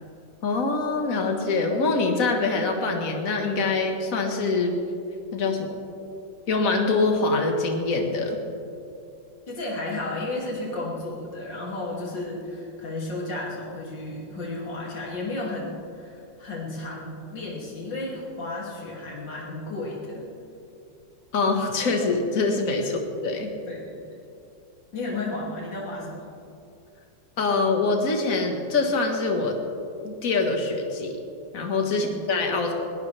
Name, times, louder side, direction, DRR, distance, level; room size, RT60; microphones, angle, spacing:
voice 1, 0.4-4.7 5.3-5.7 6.5-8.4 21.3-23.5 27.4-29.6 30.0-31.2 31.5-32.7, left 3 dB, 50° left, 2 dB, 1.9 m, -24 dB
voice 2, 9.5-20.3 22.8-22.9 23.7-24.2 24.9-26.3 31.9-32.1, left 2 dB, 80° left, -4 dB, 3.3 m, -33 dB
21.0 x 17.5 x 3.4 m, 2.6 s
omnidirectional pair, 1.9 m